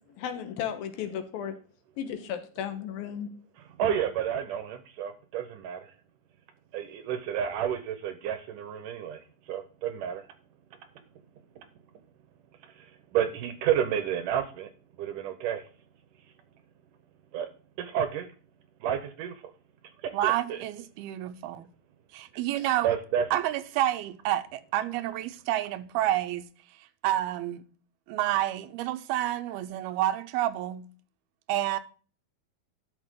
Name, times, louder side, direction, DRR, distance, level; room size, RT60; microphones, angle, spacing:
voice 1, 0.2-1.5 2.0-3.3, left 9 dB, 75° left, 2.8 m, -34 dB
voice 2, 3.8-5.8 6.7-9.2 9.5-10.2 13.1-14.7 15.0-15.6 17.3-17.5 17.8-18.3 18.8-19.3 20.2-20.6 22.8-23.3, right 9 dB, 70° right, 2.2 m, -30 dB
voice 3, 20.1-21.7 22.1-22.9 23.3-26.5 27.0-27.6 28.1-30.9 31.5-31.8, right 13 dB, 90° right, 2.6 m, -29 dB
11.5 x 6.5 x 3.7 m
omnidirectional pair, 4.4 m